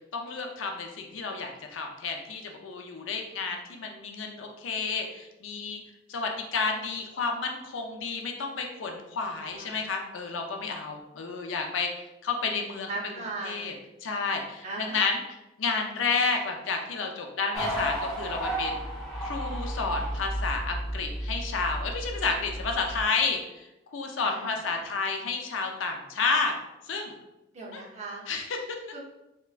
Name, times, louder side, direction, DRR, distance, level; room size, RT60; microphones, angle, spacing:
voice 1, 0.1-5.8 6.1-11.9 12.2-12.9 13.4-13.7 14.0-15.2 15.6-18.7 19.2-23.7 23.9-26.5 26.9-27.1 27.7-27.8 28.3-28.5, left 4 dB, 85° left, 3 dB, 0.5 m, -31 dB
voice 2, 9.4-9.8 12.9-13.7 14.6-15.2 24.2-24.6 27.5-28.3 28.9-29.0, right 3 dB, 35° right, -2 dB, 0.7 m, -38 dB
sound 1, 17.5-23.0, right 1 dB, ahead, 1.1 m, -33 dB
3.4 x 2.9 x 2.4 m, 0.92 s
head